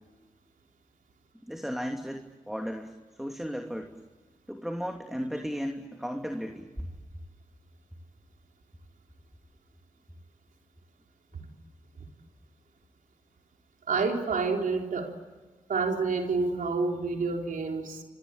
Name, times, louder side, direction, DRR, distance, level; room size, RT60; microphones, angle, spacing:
voice 1, 1.4-3.9 4.5-6.7, equal, ahead, 4 dB, 2.9 m, -35 dB
voice 2, 13.9-15.1 15.7-18.0, right 4 dB, 80° right, 3 dB, 3.9 m, -28 dB
27.5 x 23.5 x 9.0 m, 1.3 s
cardioid pair, 50°, 14 cm